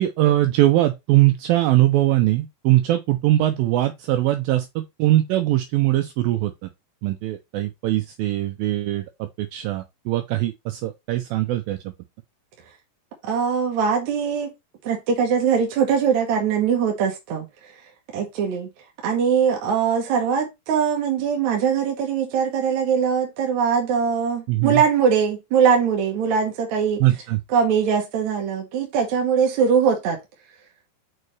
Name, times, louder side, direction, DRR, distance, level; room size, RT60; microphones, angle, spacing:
voice 1, 0.0-6.7 7.0-11.9 24.5-24.8 27.0-27.4, right 15 dB, 85° right, 2.1 m, -21 dB
voice 2, 13.3-14.5 14.8-17.5 18.1-18.7 19.0-27.0 27.5-30.2, right 7 dB, 65° right, 1.9 m, -21 dB
6.6 x 4.8 x 3.2 m
omnidirectional pair, 4.6 m